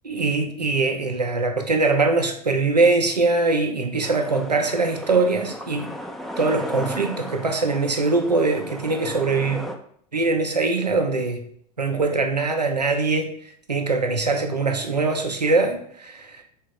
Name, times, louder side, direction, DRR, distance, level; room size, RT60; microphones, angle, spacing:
voice 1, 0.0-5.9 6.4-9.6 10.1-11.4 11.8-13.3 13.7-16.4, right 3 dB, 85° right, 4 dB, 0.6 m, -22 dB
sound 1, 4.0-9.8, left 1 dB, ahead, 0.4 m, -35 dB
3.6 x 3.2 x 4.4 m, 0.63 s
figure-of-eight pair, 85°, 20 cm